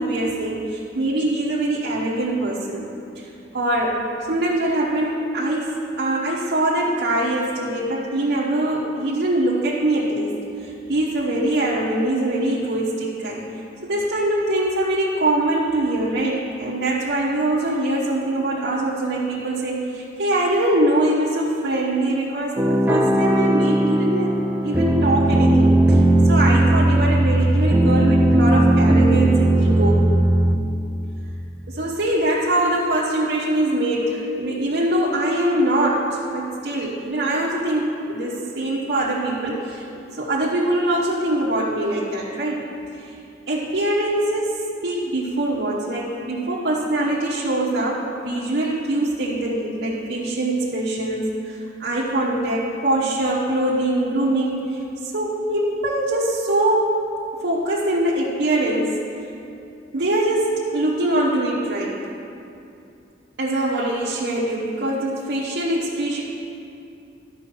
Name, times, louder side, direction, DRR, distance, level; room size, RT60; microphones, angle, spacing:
voice 1, 0.0-2.9 3.1-3.3 3.5-4.0 4.3-13.4 13.8-30.1 31.7-42.7 42.9-43.2 43.5-57.0 57.4-59.0 59.9-61.9 63.4-66.2, right 1 dB, 70° right, -7 dB, 1.0 m, -23 dB
sound 1, 22.6-30.6, right 1 dB, 10° right, 0.5 m, -17 dB
11.5 x 5.1 x 6.0 m, 2.7 s
head